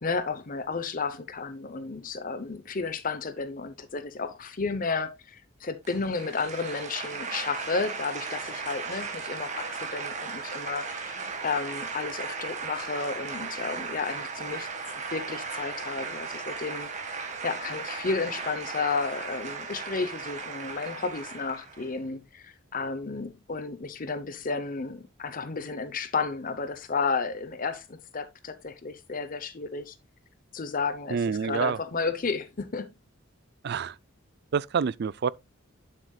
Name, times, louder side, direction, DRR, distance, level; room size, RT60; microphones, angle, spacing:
voice 1, 0.0-14.7 15.1-30.0 30.5-32.9, left 4 dB, 45° left, 0.8 m, -32 dB
sound 1, 5.8-21.9, right 5 dB, 35° right, 1.7 m, -36 dB
voice 2, 31.1-31.8 33.6-33.9 34.5-35.3, right 6 dB, 55° right, 0.4 m, -27 dB
9.2 x 7.5 x 2.3 m
head